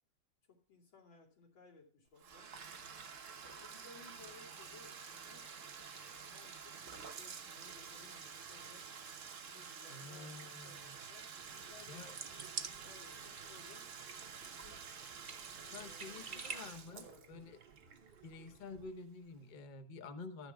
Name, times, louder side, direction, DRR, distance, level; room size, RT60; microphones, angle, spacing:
voice 1, 0.4-2.5 3.5-5.5 6.2-8.9 9.5-13.8 14.4-14.9 15.5-16.5 16.9-17.4, left 4 dB, 85° left, -1 dB, 3.5 m, -61 dB
Bathtub (filling or washing), 2.2-18.9, right 6 dB, 45° right, 1.2 m, -50 dB
voice 2, 9.9-11.1 11.9-12.2 15.7-17.6 18.2-20.5, left 4 dB, 40° left, 7 dB, 0.6 m, -50 dB
sound 1, 11.3-18.9, right 6 dB, 90° right, 0.4 m, -51 dB
13.5 x 9.7 x 2.3 m, 0.44 s
omnidirectional pair, 2.2 m